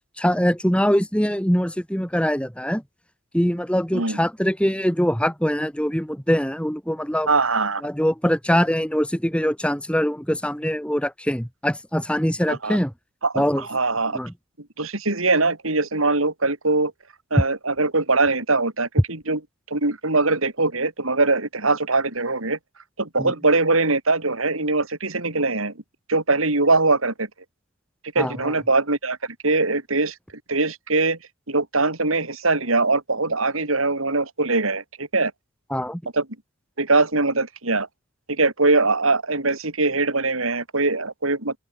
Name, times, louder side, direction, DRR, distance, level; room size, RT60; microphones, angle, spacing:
voice 1, 0.2-2.8 3.3-7.3 7.8-12.9 13.3-13.6 14.1-14.3 23.2-23.3 28.2-28.5 35.7-36.0, equal, 5° left, 3.2 m, -23 dB
voice 2, 7.3-7.8 12.5-12.8 13.2-14.2 14.8-16.9 17.3-19.4 19.7-22.6 23.0-25.7 26.1-27.3 28.1-30.1 30.5-31.2 31.5-35.3 36.1-36.3 36.8-37.9 38.3-41.5, right 3 dB, 90° right, 4.7 m, -22 dB
open air
head